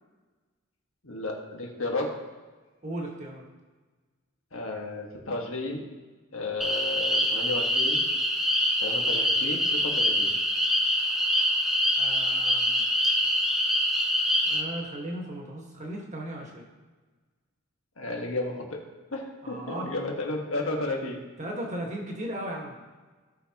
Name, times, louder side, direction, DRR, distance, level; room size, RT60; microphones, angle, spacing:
voice 1, 1.0-2.1 4.5-5.9 6.3-8.0 8.8-10.3 18.0-18.8 19.1-21.2, left 2 dB, 70° left, 0 dB, 1.7 m, -33 dB
voice 2, 2.8-3.4 11.9-12.9 14.4-16.7 19.4-19.9 21.4-22.7, right 1 dB, 35° right, 0 dB, 1.6 m, -36 dB
sound 1, 6.6-14.6, equal, ahead, 0.8 m, -25 dB
16.5 x 5.8 x 3.0 m, 1.3 s
head